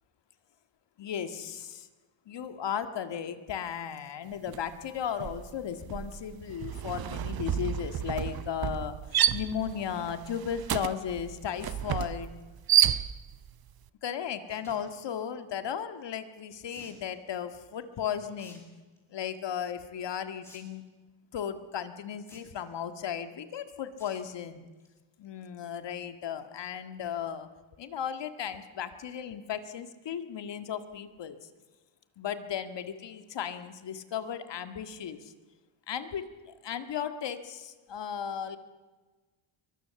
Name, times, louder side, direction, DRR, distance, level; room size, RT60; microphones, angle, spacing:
voice 1, 1.0-1.9 2.3-9.0 9.3-12.3 14.0-18.6 19.1-20.8 21.3-24.7 25.2-27.5 27.8-31.4 32.2-35.3 35.9-38.6, left 8 dB, 60° left, 9 dB, 2.0 m, -35 dB
sound 1, 4.5-4.8 5.0-13.5, right 10 dB, 45° right, 0.9 m, -30 dB
sound 2, 14.4-14.8 16.7-17.0 18.3-18.6 19.0-19.3 20.4-20.6 20.9-21.0 22.2-22.7 24.0-24.2 24.6-24.9 25.2-25.3 25.5-25.6, left 1 dB, 5° left, 7.7 m, -53 dB
23.5 x 20.5 x 7.1 m, 1.3 s
cardioid pair, 105°, 49 cm